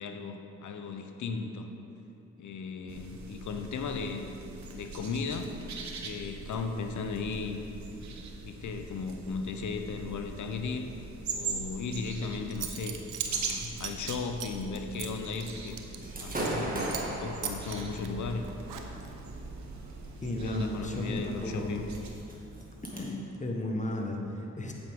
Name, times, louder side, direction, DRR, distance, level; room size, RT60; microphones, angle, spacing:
voice 1, 0.0-1.7 2.4-4.3 4.7-5.5 6.0-7.6 8.4-10.9 11.3-13.0 13.3-15.8 16.2-18.4 20.2-21.8, left 4 dB, 70° left, 6 dB, 0.8 m, -36 dB
sound 1, 2.9-22.1, right 4 dB, 60° right, 1.1 m, -42 dB
Zipper (clothing) / Coin (dropping), 12.2-12.3 12.5-16.6 16.9-17.1 17.4-19.2, right 9 dB, 85° right, 0.7 m, -39 dB
Gunshot gunfire / Fireworks, 16.0-23.0, right 1 dB, 25° right, 2.0 m, -39 dB
voice 2, 20.2-21.7 22.9-24.7, left 1 dB, 25° left, 0 dB, 1.4 m, -34 dB
8.7 x 7.9 x 3.7 m, 2.8 s
supercardioid pair, 55°, 31 cm